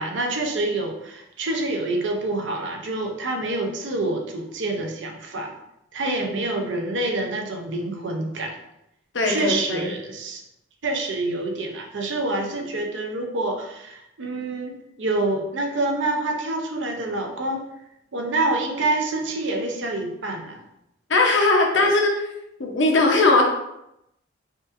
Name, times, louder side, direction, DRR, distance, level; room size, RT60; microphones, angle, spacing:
voice 1, 0.0-5.5 5.9-8.5 9.2-10.4 10.8-17.7 18.1-20.6 21.8-21.9, right 2 dB, 70° right, 3 dB, 0.6 m, -27 dB
voice 2, 6.0-6.4 9.1-9.9 21.1-22.1 22.6-23.4, left 2 dB, 70° left, 1 dB, 0.7 m, -19 dB
5.1 x 2.5 x 2.5 m, 0.84 s
head